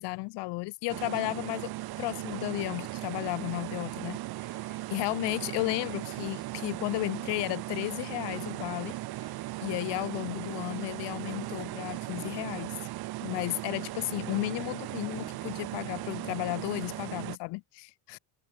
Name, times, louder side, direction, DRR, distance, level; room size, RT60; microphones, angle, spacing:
voice 1, 0.0-1.7 2.0-9.0 9.2-9.3 9.6-12.8 13.2-18.2, left 24 dB, 90° left, 2.4 m, -34 dB
sound 1, 0.9-17.4, right 17 dB, 65° right, 4.2 m, -38 dB
cardioid pair, 160°, 40 cm